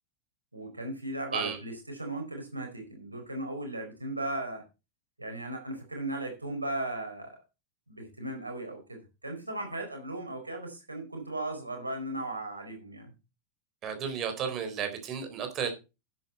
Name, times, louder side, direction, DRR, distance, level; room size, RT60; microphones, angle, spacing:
voice 1, 0.5-4.6 5.2-7.4 7.9-13.1, right 2 dB, 80° right, 4 dB, 4.7 m, -37 dB
voice 2, 13.8-15.7, right 7 dB, 30° right, 7 dB, 4.0 m, -33 dB
10.5 x 9.0 x 4.4 m, 0.28 s
figure-of-eight pair, 90°, 0 cm